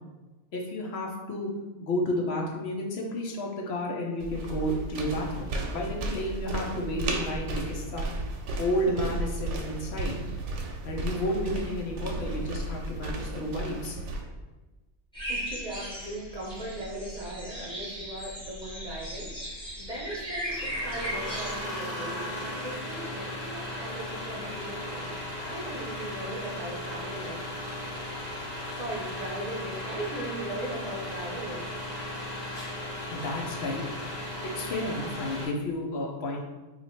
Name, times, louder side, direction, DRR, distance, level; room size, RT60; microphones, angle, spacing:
voice 1, 0.5-1.5 1.8-8.1 8.6-10.2 10.8-14.0 33.1-33.8 34.6-36.4, left 1 dB, 70° left, -1 dB, 0.8 m, -31 dB
sound 1, 4.2-14.2, right 2 dB, 85° right, 0.9 m, -34 dB
sound 2, 15.1-21.6, equal, 5° left, 0.8 m, -37 dB
voice 2, 15.3-27.4 28.7-31.6, right 1 dB, 40° right, -5 dB, 0.7 m, -38 dB
sound 3, 20.5-35.5, left 1 dB, 40° left, 0.8 m, -36 dB
2.9 x 2.4 x 4.2 m, 1.2 s
omnidirectional pair, 1.2 m